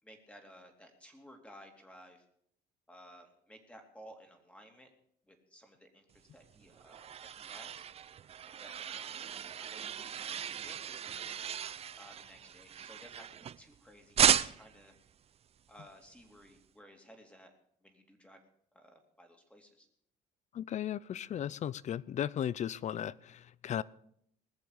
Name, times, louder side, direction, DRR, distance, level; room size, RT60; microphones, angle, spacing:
voice 1, 0.0-2.2 2.9-4.9 5.3-7.1 7.4-7.9 8.4-9.2 9.6-11.2 11.9-14.9 15.7-17.5 17.8-18.4 18.7-19.9, equal, 5° left, 2.7 m, -56 dB
sound 1, 6.4-13.7 14.2-14.8, right 9 dB, 35° right, 0.5 m, -34 dB
voice 2, 20.5-23.8, left 10 dB, 45° left, 0.5 m, -36 dB
20.0 x 7.0 x 6.6 m
cardioid pair, 110°, 17 cm